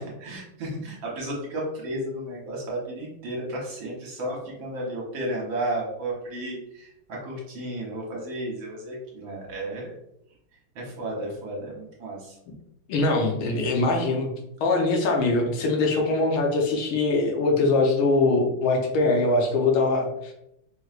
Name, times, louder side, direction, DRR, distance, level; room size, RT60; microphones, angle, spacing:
voice 1, 0.0-9.9 10.8-12.4, right 1 dB, 65° right, -3 dB, 1.7 m, -33 dB
voice 2, 12.9-14.3 14.6-20.3, left 3 dB, 75° left, 1 dB, 1.6 m, -22 dB
4.7 x 3.1 x 2.4 m, 0.79 s
omnidirectional pair, 2.4 m